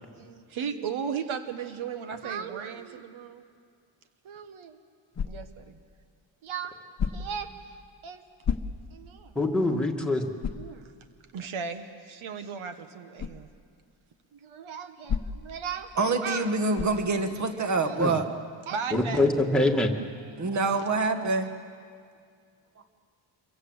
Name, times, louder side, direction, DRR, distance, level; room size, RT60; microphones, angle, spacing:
voice 1, 0.1-3.4 4.2-4.8 5.2-5.8 6.4-6.7 7.1-7.8 8.0-8.2 8.9-9.3 10.5-10.9 11.3-13.5 14.3-15.9 16.2-16.5 16.9-17.3 17.7-18.2 18.7-19.2 20.2-20.7, right 6 dB, 75° right, 8 dB, 1.5 m, -36 dB
sound 1, 5.1-5.7 7.0-7.5 8.4-9.1 9.6-9.7 10.4-10.8 13.2-13.4 15.1-15.6 16.7-17.1, left 7 dB, 35° left, 1.0 m, -31 dB
voice 2, 9.4-10.2 18.0-18.1 18.9-19.9, left 2 dB, ahead, 0 dB, 1.8 m, -24 dB
voice 3, 16.0-18.2 20.4-21.5, right 3 dB, 35° right, 7 dB, 1.6 m, -26 dB
27.0 x 23.5 x 8.0 m, 2.1 s
wide cardioid pair, 170°, 48 cm